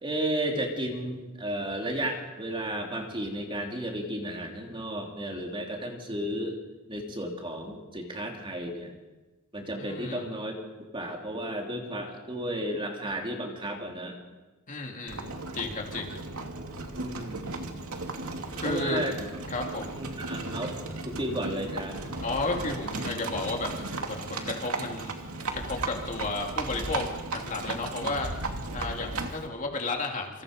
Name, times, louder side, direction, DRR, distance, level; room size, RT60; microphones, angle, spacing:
voice 1, 0.0-6.6 6.9-8.9 9.5-10.6 10.9-14.2 17.0-17.4 18.6-19.2 20.0-20.8 21.0-22.0, right 1 dB, 25° right, 1 dB, 3.0 m, -33 dB
voice 2, 9.8-10.2 14.7-15.3 15.5-16.1 18.5-19.0 19.5-19.9 22.2-23.7 24.1-25.1 25.5-28.3 28.7-30.4, left 3 dB, 35° left, 1 dB, 3.0 m, -33 dB
Livestock farm animals working animals, 15.1-29.5, right 2 dB, 80° right, 2.5 m, -35 dB
27.0 x 25.5 x 5.2 m, 1.2 s
head